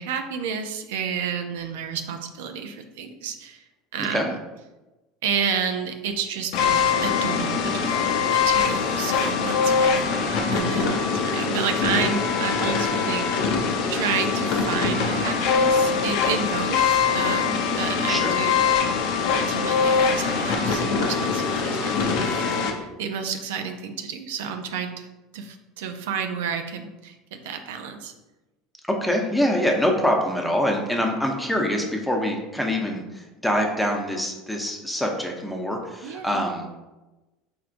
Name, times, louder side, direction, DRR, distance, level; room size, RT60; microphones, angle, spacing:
voice 1, 0.0-3.6 3.9-4.4 5.2-13.6 13.9-18.8 19.3-25.1 25.3-28.1 36.0-36.4, right 6 dB, 85° right, 6 dB, 0.4 m, -31 dB
sound 1, 6.5-22.7, left 5 dB, 70° left, 0.6 m, -23 dB
voice 2, 29.0-36.7, equal, 5° left, 1 dB, 0.7 m, -25 dB
4.5 x 3.5 x 2.5 m, 1.1 s
supercardioid pair, 110°, 0 cm